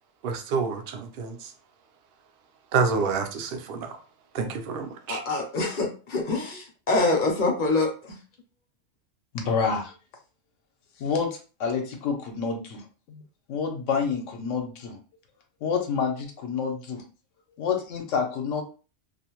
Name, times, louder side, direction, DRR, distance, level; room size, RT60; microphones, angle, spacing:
voice 1, 0.2-1.4 2.7-3.9 4.3-5.2, right 5 dB, 60° right, 6 dB, 0.6 m, -28 dB
voice 2, 5.1-7.9, left 3 dB, 50° left, 1 dB, 0.6 m, -25 dB
voice 3, 9.3-9.9 11.0-12.8 13.1-13.2 13.5-15.0 15.6-17.0 17.6-18.6, left 5 dB, 80° left, 2 dB, 0.9 m, -28 dB
2.4 x 2.0 x 2.9 m, 0.35 s
omnidirectional pair, 1.3 m